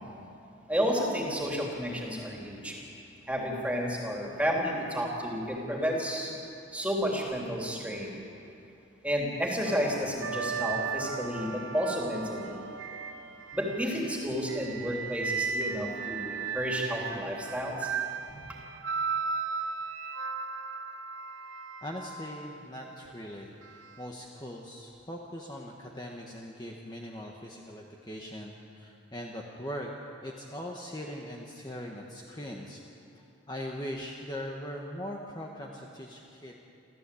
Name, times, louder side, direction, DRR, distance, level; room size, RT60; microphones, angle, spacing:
voice 1, 0.7-2.7 3.3-6.3 6.7-8.2 9.0-12.6 13.5-17.9, equal, 5° right, -2 dB, 3.2 m, -31 dB
sound 1, 9.7-14.0 14.5-22.6 23.6-23.9, right 5 dB, 75° right, 1.0 m, -36 dB
voice 2, 21.8-29.9 30.2-32.8 33.1-36.5, equal, 20° left, -1 dB, 1.4 m, -40 dB
28.0 x 14.5 x 8.5 m, 2.7 s
head